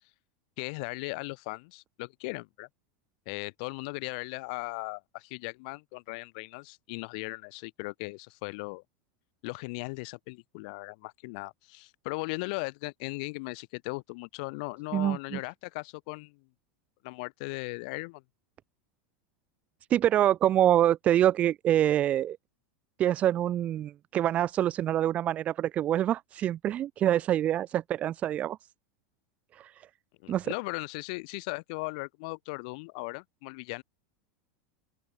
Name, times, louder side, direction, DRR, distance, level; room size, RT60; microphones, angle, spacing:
voice 1, 0.6-2.7 3.3-8.8 9.4-16.5 17.0-18.2 30.2-33.8, left 28 dB, 60° left, 5.5 m, -38 dB
voice 2, 14.9-15.4 19.9-22.4 23.0-28.6 29.5-29.9 30.3-30.5, right 11 dB, 30° right, 0.6 m, -26 dB
open air
supercardioid pair, 145°, 5 cm